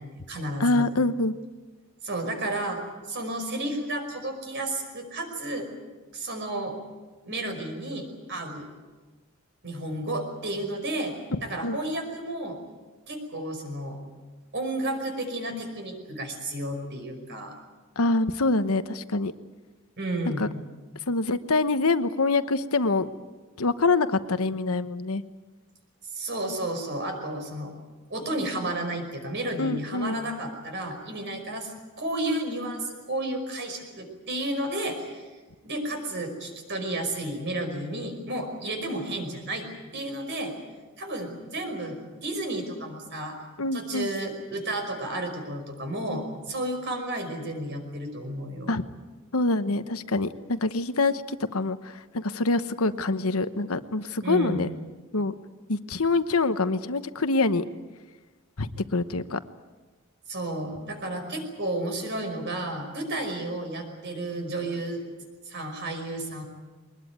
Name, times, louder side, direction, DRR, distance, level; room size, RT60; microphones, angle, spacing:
voice 1, 0.0-0.9 2.0-2.8 3.1-5.7 6.1-6.7 7.2-8.7 9.6-11.2 11.4-12.6 13.1-14.0 14.5-17.6 20.0-20.5 26.1-27.7 28.1-31.7 32.0-35.3 35.6-39.7 39.9-40.5 41.0-43.4 43.7-48.8 54.2-54.6 60.3-65.0 65.5-66.4, right 1 dB, 55° right, 5 dB, 5.5 m, -32 dB
voice 2, 0.6-1.3 11.3-11.8 18.0-19.3 20.4-20.5 21.1-23.1 23.6-25.2 29.6-30.2 43.6-44.1 48.7-48.8 49.3-54.7 55.1-55.3 55.7-57.6 58.6-59.4, left 3 dB, 85° left, 11 dB, 1.1 m, -25 dB
22.5 x 20.0 x 9.5 m, 1.3 s
head